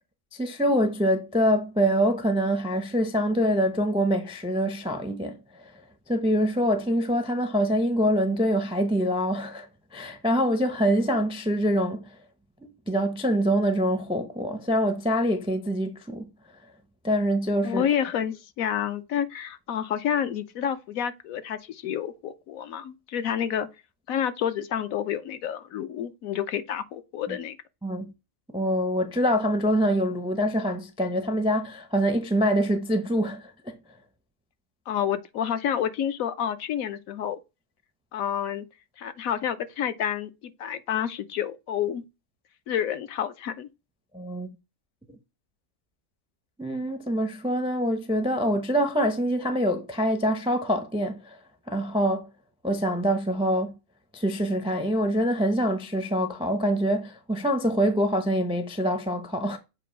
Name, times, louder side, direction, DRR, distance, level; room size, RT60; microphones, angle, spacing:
voice 1, 0.3-5.7 6.1-9.7 9.9-12.0 12.6-16.2 17.0-17.8 27.3-27.4 27.8-28.1 28.5-33.7 44.1-44.5 46.6-51.4 51.7-52.3 52.6-53.7 54.1-59.6, equal, 5° right, 0.4 m, -25 dB
voice 2, 17.6-23.7 24.1-27.6 34.9-37.4 38.1-38.7 39.0-42.0 42.7-43.7, left 9 dB, 70° left, 1.0 m, -29 dB
7.7 x 2.6 x 5.0 m
omnidirectional pair, 1.6 m